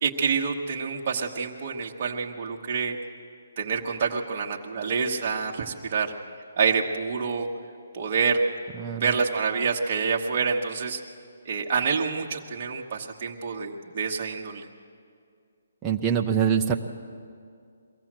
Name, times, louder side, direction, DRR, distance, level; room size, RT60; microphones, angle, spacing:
voice 1, 0.0-3.0 3.6-6.1 6.6-7.5 7.9-8.4 8.9-11.0 11.4-14.7, right 5 dB, 25° right, 0 dB, 1.2 m, -27 dB
voice 2, 15.8-16.8, right 8 dB, 10° right, 0 dB, 0.5 m, -24 dB
23.0 x 16.5 x 7.5 m, 2.3 s
hypercardioid pair, 180°, 0 cm